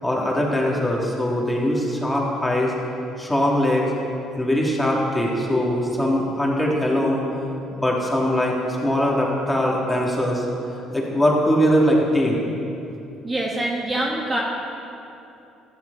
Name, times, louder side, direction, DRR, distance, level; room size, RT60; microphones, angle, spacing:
voice 1, 0.0-2.7 3.2-3.8 4.4-7.2 7.7-8.6 8.8-10.4 10.9-12.5, equal, 10° left, -3 dB, 3.1 m, -21 dB
voice 2, 13.2-14.4, right 1 dB, 25° right, -2 dB, 2.0 m, -25 dB
15.0 x 12.5 x 4.3 m, 2.8 s
supercardioid pair, 85°, 0 cm